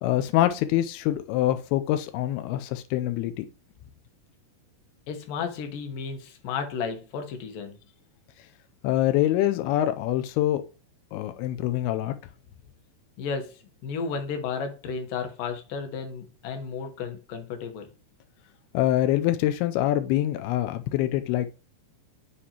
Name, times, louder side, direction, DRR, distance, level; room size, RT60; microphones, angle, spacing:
voice 1, 0.0-3.5 8.8-10.6 11.1-12.1 18.7-21.5, left 13 dB, 90° left, 2.6 m, -25 dB
voice 2, 5.1-7.8 13.2-17.9, left 5 dB, 65° left, 2.7 m, -33 dB
12.5 x 4.3 x 2.9 m
omnidirectional pair, 4.4 m